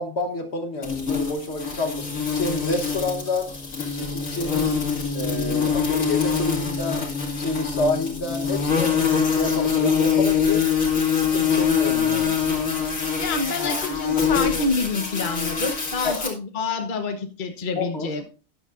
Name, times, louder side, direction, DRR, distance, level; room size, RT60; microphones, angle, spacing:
voice 1, 0.0-3.5 3.9-4.8 5.1-10.6 11.1-12.4 16.0-16.2 17.7-18.1, left 2 dB, 55° left, 5 dB, 1.5 m, -29 dB
sound 1, 0.8-16.3, left 6 dB, 80° left, 2.9 m, -24 dB
voice 2, 13.2-18.3, left 4 dB, 40° left, 5 dB, 1.2 m, -27 dB
12.5 x 10.5 x 2.5 m, 0.34 s
omnidirectional pair, 1.4 m